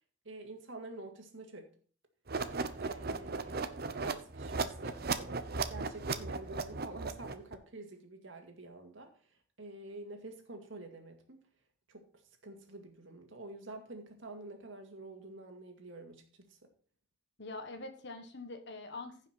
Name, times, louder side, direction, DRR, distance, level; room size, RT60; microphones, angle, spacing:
voice 1, 0.3-1.7 2.8-3.6 3.9-9.1 9.6-11.4 11.9-12.1 12.4-16.6, right 2 dB, 65° right, 4 dB, 2.1 m, -48 dB
sound 1, 2.3-7.5, right 4 dB, 50° right, 0.8 m, -36 dB
voice 2, 17.4-19.3, left 3 dB, 55° left, 7 dB, 1.5 m, -44 dB
15.0 x 5.7 x 4.4 m, 0.43 s
head